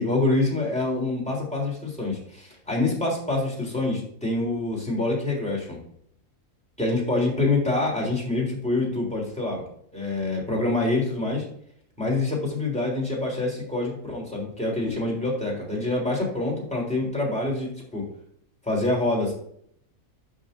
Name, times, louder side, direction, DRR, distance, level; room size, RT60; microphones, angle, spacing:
voice 1, 0.0-5.8 6.8-9.7 9.9-11.4 12.0-18.1 18.6-19.3, left 2 dB, 5° left, -3 dB, 3.4 m, -26 dB
11.5 x 6.1 x 2.6 m, 0.66 s
omnidirectional pair, 1.6 m